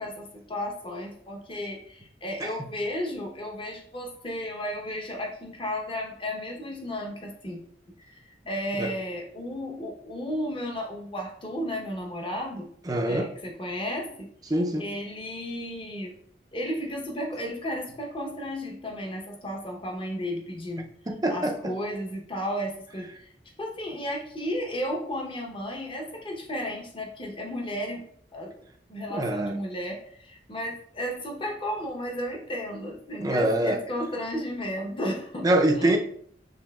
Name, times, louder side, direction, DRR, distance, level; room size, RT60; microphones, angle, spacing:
voice 1, 0.0-7.6 8.1-14.3 14.8-16.1 16.5-20.8 21.3-23.3 23.6-28.1 28.3-28.5 28.9-35.5 35.8-36.0, equal, 30° left, 0.8 m, -33 dB
voice 2, 12.9-13.3 14.5-14.9 21.1-21.7 29.1-29.5 33.2-33.8 35.4-36.0, right 1 dB, 20° right, 0.5 m, -24 dB
7.1 x 3.3 x 2.3 m
head